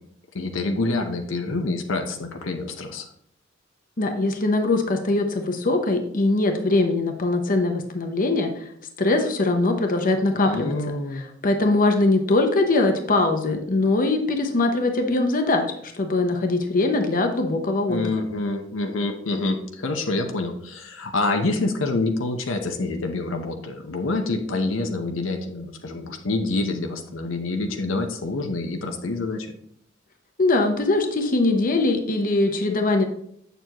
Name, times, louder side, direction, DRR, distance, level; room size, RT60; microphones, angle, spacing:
voice 1, 0.3-3.1 10.3-11.3 17.9-29.5, left 2 dB, 75° left, 4 dB, 0.9 m, -27 dB
voice 2, 4.0-8.6 9.0-10.8 11.1-18.0 30.4-33.1, left 2 dB, 45° left, 5 dB, 0.9 m, -22 dB
7.8 x 6.8 x 3.0 m, 0.69 s
head